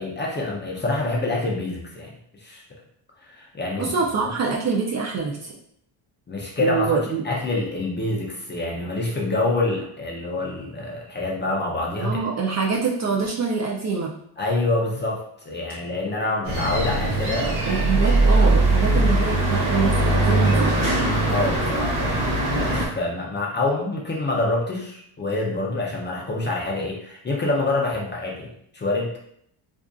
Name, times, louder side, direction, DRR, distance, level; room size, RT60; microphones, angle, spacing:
voice 1, 0.0-2.6 3.2-3.9 4.2-4.3 6.3-7.0 7.2-12.2 14.4-18.3 21.3-29.2, left 2 dB, 25° left, -2 dB, 0.5 m, -26 dB
voice 2, 3.8-5.5 6.6-7.2 12.0-14.1 17.6-20.7 21.3-21.4, right 5 dB, 35° right, -2 dB, 0.4 m, -25 dB
sound 1, 16.5-22.9, right 2 dB, 55° right, 0.9 m, -20 dB
2.5 x 2.5 x 2.3 m, 0.70 s
cardioid pair, 95°, 49 cm